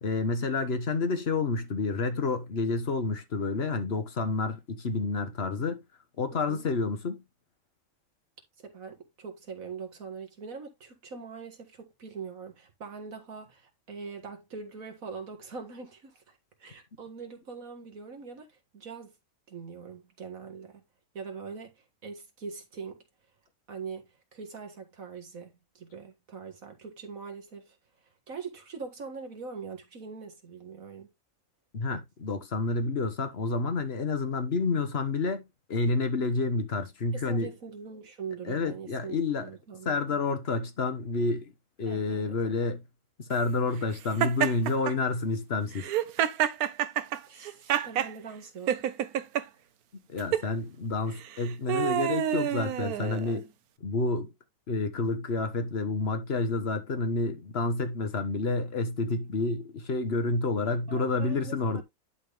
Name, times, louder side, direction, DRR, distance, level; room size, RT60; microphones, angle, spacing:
voice 1, 0.0-5.8 6.2-7.2 31.7-35.4 35.7-37.5 38.4-39.5 39.8-41.5 41.8-42.8 43.2-45.9 50.1-53.5 53.8-54.3 54.7-61.8, left 3 dB, 45° left, 1.4 m, -29 dB
voice 2, 8.6-19.2 19.5-20.8 21.1-23.0 23.7-27.8 28.3-31.1 37.1-40.2 41.9-42.5 47.3-48.9 60.9-61.8, right 5 dB, 70° right, 2.2 m, -42 dB
Laughter, 44.2-44.9 45.7-48.1 48.7-49.4 50.2-50.5 51.2-53.4, right 10 dB, 90° right, 1.2 m, -28 dB
11.0 x 4.1 x 3.4 m
omnidirectional pair, 1.5 m